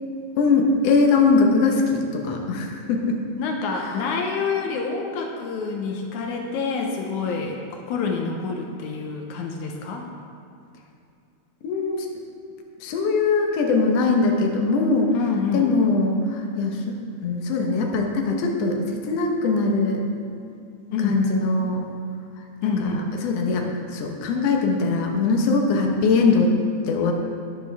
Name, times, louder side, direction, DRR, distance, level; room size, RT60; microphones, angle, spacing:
voice 1, 0.4-3.2 3.8-3.9 11.6-12.1 12.8-15.2 15.5-16.9 17.2-20.1 21.0-21.8 22.8-23.7 23.9-26.5 26.9-27.1, left 3 dB, 65° left, 1 dB, 2.0 m, -21 dB
voice 2, 3.4-10.1 15.1-15.7 20.9-21.2 22.6-23.1, left 5 dB, 80° left, 1 dB, 2.2 m, -27 dB
12.0 x 10.5 x 3.5 m, 2.5 s
omnidirectional pair, 3.5 m